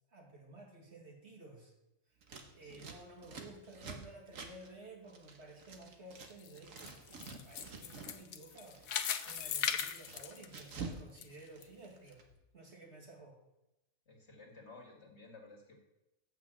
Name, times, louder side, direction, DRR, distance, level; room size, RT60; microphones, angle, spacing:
voice 1, 0.1-1.7 2.5-8.8 9.2-12.2 12.5-13.4, right 2 dB, 50° right, -1 dB, 2.4 m, -54 dB
Scissors, 2.2-6.3 6.6-8.2 8.5-11.0 11.3-12.2, right 4 dB, 70° right, 1.6 m, -49 dB
voice 2, 2.6-2.9 14.1-15.8, left 3 dB, 50° left, 1 dB, 2.1 m, -55 dB
sound 1, 6.3-11.2 11.6-11.7 12.3-12.4, left 8 dB, 85° left, 1.2 m, -38 dB
8.5 x 6.1 x 7.4 m, 0.93 s
omnidirectional pair, 1.4 m